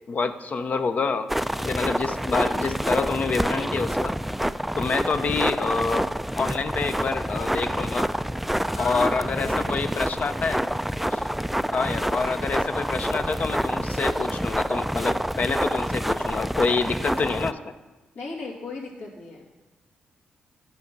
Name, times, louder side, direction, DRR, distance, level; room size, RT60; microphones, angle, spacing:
voice 1, 0.1-1.3 1.6-4.1 4.8-6.1 6.3-8.1 8.8-10.6 11.1-11.2 11.7-17.6, left 4 dB, 50° left, 10 dB, 0.7 m, -27 dB
sound 1, 1.3-17.5, equal, 5° right, 0.3 m, -27 dB
voice 2, 8.7-10.1 18.1-19.5, left 2 dB, 75° left, -3 dB, 2.5 m, -36 dB
9.7 x 5.2 x 5.3 m, 1.2 s
supercardioid pair, 60°, 3 cm